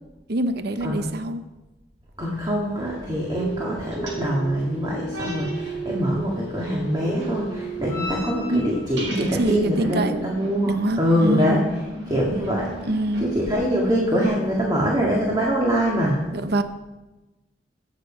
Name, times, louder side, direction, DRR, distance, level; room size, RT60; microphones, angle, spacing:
voice 1, 0.3-1.5 8.5-8.6 9.1-10.2 10.7-11.7 12.9-13.3 16.3-16.6, right 1 dB, 60° right, 10 dB, 0.7 m, -25 dB
voice 2, 2.2-11.6 12.1-12.9 13.2-16.2, equal, 20° right, -3 dB, 1.9 m, -24 dB
sound 1, 2.8-14.2, left 1 dB, 80° right, 5.3 m, -41 dB
sound 2, 3.3-8.8 9.4-14.4 15.4-15.7, right 2 dB, 20° left, 2.3 m, -35 dB
17.0 x 7.5 x 5.0 m, 1.1 s
head